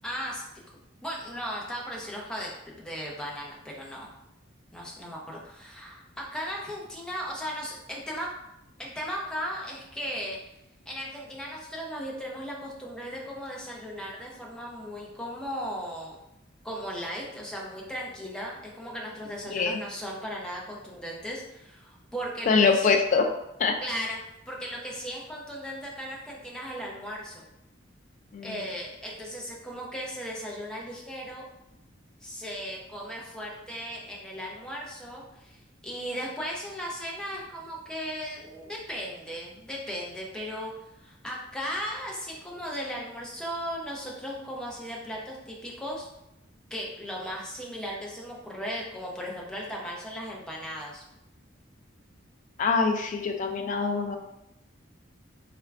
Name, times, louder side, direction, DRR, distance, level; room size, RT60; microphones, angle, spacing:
voice 1, 0.0-0.4 1.0-4.1 4.7-8.3 8.8-10.4 10.9-16.2 16.6-22.9 23.8-24.2 24.5-27.4 28.4-31.4 32.2-35.6 35.8-40.7 41.0-46.1 46.7-51.0, equal, 5° left, -3 dB, 0.6 m, -36 dB
voice 2, 22.5-23.3 23.6-23.7 28.3-28.6 52.6-54.2, left 4 dB, 40° left, 4 dB, 0.3 m, -24 dB
3.5 x 3.3 x 2.4 m, 0.85 s
head